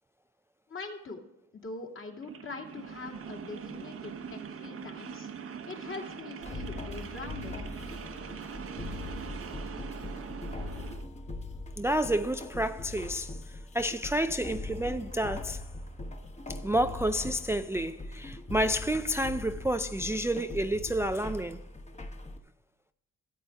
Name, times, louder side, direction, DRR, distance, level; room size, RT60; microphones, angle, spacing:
voice 1, 0.7-1.2 1.5-5.3 5.7-7.5, left 3 dB, 40° left, 2.4 m, -42 dB
sound 1, 2.2-11.1, right 6 dB, 45° right, 0.9 m, -42 dB
sound 2, 6.4-22.4, left 2 dB, 25° left, 1.2 m, -41 dB
voice 2, 11.8-15.6 16.5-21.6, right 1 dB, 10° right, 0.4 m, -30 dB
14.0 x 8.2 x 3.5 m
cardioid pair, 90°, 30 cm